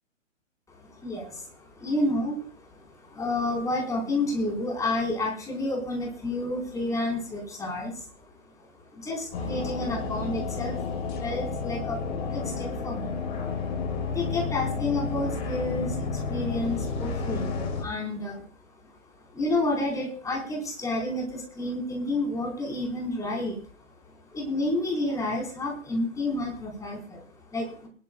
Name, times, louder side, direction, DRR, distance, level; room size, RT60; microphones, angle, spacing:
voice 1, 0.7-8.1 8.6-18.4 18.8-18.9 19.3-23.7 24.1-27.9, left 2 dB, 10° left, 0 dB, 4.4 m, -30 dB
sound 1, 9.3-17.8, left 4 dB, 40° left, 4.5 m, -31 dB
22.5 x 12.5 x 2.3 m, 0.43 s
figure-of-eight pair, 125°, 39 cm